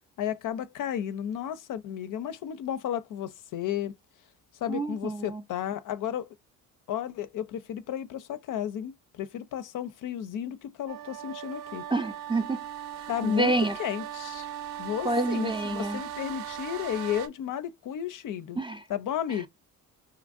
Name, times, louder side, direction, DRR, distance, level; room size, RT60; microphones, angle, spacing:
voice 1, 0.2-4.0 4.6-6.3 6.9-11.9 13.1-13.5 13.8-14.5 14.8-18.6 18.9-19.5, left 10 dB, 50° left, 0.5 m, -33 dB
voice 2, 4.7-5.4 11.9-12.6 13.2-13.8 15.0-16.0 18.6-18.8, right 2 dB, 15° right, 0.4 m, -28 dB
sound 1, 10.9-17.3, right 10 dB, 75° right, 0.6 m, -38 dB
2.9 x 2.4 x 2.4 m
supercardioid pair, 60°, 41 cm